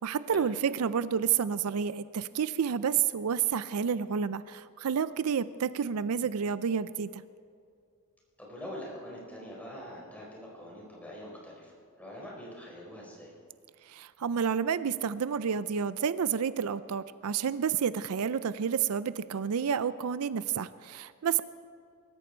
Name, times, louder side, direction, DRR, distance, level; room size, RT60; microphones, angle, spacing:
voice 1, 0.0-7.2 13.9-21.4, right 7 dB, 75° right, 15 dB, 0.4 m, -30 dB
voice 2, 8.4-13.4, equal, 5° left, -4 dB, 4.5 m, -44 dB
23.5 x 14.0 x 4.4 m, 2.4 s
head